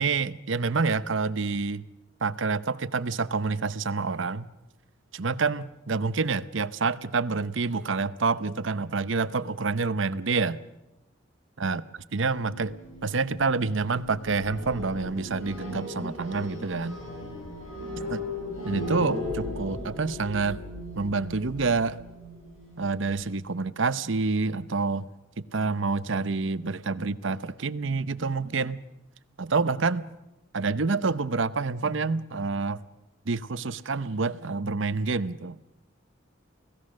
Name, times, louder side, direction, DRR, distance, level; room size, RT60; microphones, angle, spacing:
voice 1, 0.0-1.8 2.2-4.5 5.1-10.6 11.6-11.8 12.1-12.8 13.0-17.0 18.1-18.2 18.7-20.6 21.0-22.0 22.8-25.1 25.4-28.8 29.4-30.0 30.5-32.8 33.3-35.6, right 4 dB, 65° right, 15 dB, 0.8 m, -27 dB
sound 1, 12.3-23.2, left 1 dB, 85° left, 7.5 m, -37 dB
29.5 x 17.0 x 6.4 m, 0.95 s
head